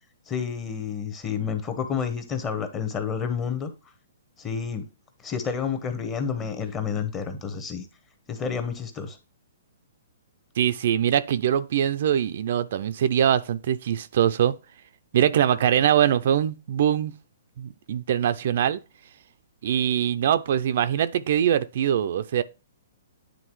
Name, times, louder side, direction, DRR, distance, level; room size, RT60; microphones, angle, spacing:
voice 1, 0.3-3.7 4.4-4.8 5.2-7.9 8.3-9.2, left 6 dB, 20° left, 0.9 m, -29 dB
voice 2, 10.6-14.5 15.1-17.1 17.6-18.8 19.6-22.4, right 9 dB, 55° right, 0.4 m, -23 dB
9.2 x 3.6 x 3.1 m
hypercardioid pair, 155°, 0 cm